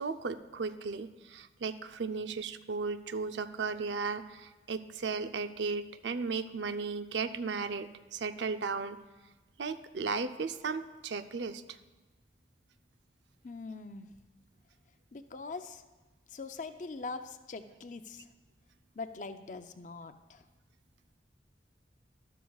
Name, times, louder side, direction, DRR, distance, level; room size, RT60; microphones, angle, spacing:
voice 1, 0.0-9.0 9.6-11.6, right 4 dB, 80° right, 10 dB, 0.5 m, -35 dB
voice 2, 13.4-14.1 15.1-15.8 16.3-18.3 19.0-20.4, left 3 dB, 45° left, 9 dB, 0.5 m, -42 dB
12.5 x 12.5 x 2.4 m, 1.2 s
head